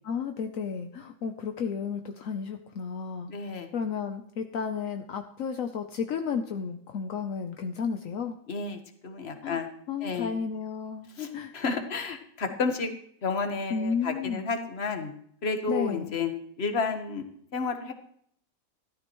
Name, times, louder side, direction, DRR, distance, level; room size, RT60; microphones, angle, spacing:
voice 1, 0.0-3.3 3.7-8.4 9.4-9.6 9.9-11.1 11.3-11.5 13.7-14.5 15.7-16.2, left 6 dB, 70° left, 5 dB, 1.2 m, -32 dB
voice 2, 3.3-3.7 8.5-9.7 10.0-10.4 11.2-12.9 13.2-15.1 15.4-17.2 17.5-17.9, left 4 dB, 50° left, 6 dB, 1.5 m, -31 dB
14.5 x 13.0 x 3.1 m, 0.65 s
omnidirectional pair, 1.4 m